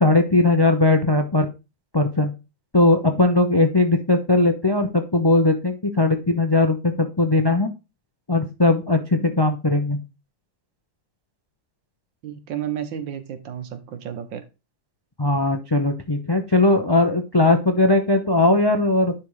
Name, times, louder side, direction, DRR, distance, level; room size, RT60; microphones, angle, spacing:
voice 1, 0.0-1.5 1.9-2.3 2.7-7.7 8.3-10.0 15.2-19.1, left 2 dB, 35° left, 0.4 m, -19 dB
voice 2, 12.2-14.4, right 9 dB, 75° right, 1.8 m, -32 dB
10.5 x 3.6 x 4.9 m
omnidirectional pair, 2.0 m